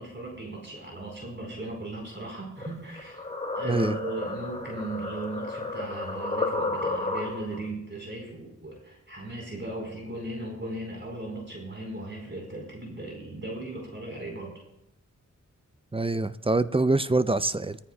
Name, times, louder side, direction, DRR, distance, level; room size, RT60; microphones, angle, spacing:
voice 1, 0.0-3.2 3.6-14.5, right 1 dB, 35° right, 4.3 m, -37 dB
sound 1, 2.6-7.7, left 2 dB, 20° left, 1.4 m, -32 dB
voice 2, 15.9-17.8, right 2 dB, 20° right, 0.4 m, -25 dB
21.0 x 14.0 x 2.3 m
wide cardioid pair, 55°, 32 cm